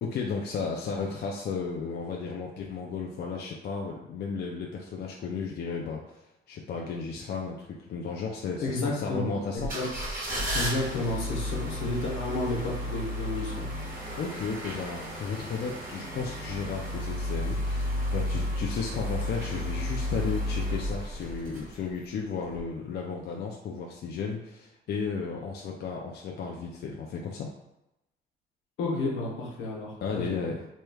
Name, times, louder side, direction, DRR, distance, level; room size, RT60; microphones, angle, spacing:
voice 1, 0.0-6.2 6.5-9.7 14.2-27.5 30.0-30.6, left 5 dB, 55° left, -1 dB, 0.4 m, -34 dB
voice 2, 8.6-9.9 10.5-13.7 28.8-30.4, left 2 dB, 80° left, -2 dB, 1.0 m, -31 dB
sound 1, 9.6-22.1 22.5-22.6, left 1 dB, 45° right, 1.3 m, -33 dB
3.1 x 3.1 x 2.3 m, 0.91 s
cardioid pair, 90°, 20 cm